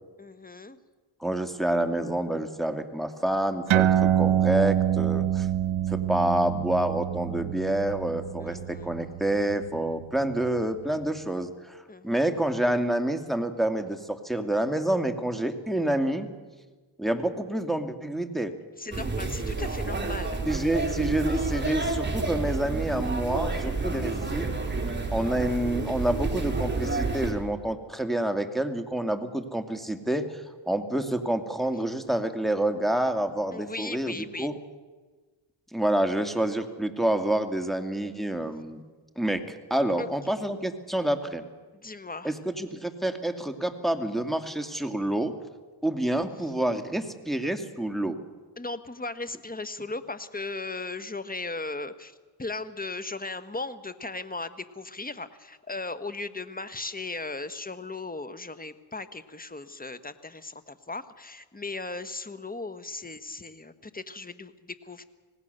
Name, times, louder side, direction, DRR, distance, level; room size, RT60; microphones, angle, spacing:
voice 1, 0.2-0.8 8.4-8.9 11.9-12.3 18.8-20.7 33.5-34.5 40.0-40.1 41.7-42.4 48.6-65.0, left 3 dB, 15° left, 12 dB, 1.5 m, -37 dB
voice 2, 1.2-5.5 5.9-16.3 17.0-18.5 20.5-24.5 25.1-34.5 35.7-38.8 39.2-41.4 42.2-45.3 45.8-48.2, right 1 dB, ahead, 6 dB, 2.3 m, -28 dB
sound 1, 3.7-10.6, right 10 dB, 70° right, 1.3 m, -26 dB
sound 2, 18.9-27.3, right 3 dB, 20° right, 4.2 m, -29 dB
26.5 x 18.5 x 6.8 m, 1.3 s
cardioid pair, 70°, 49 cm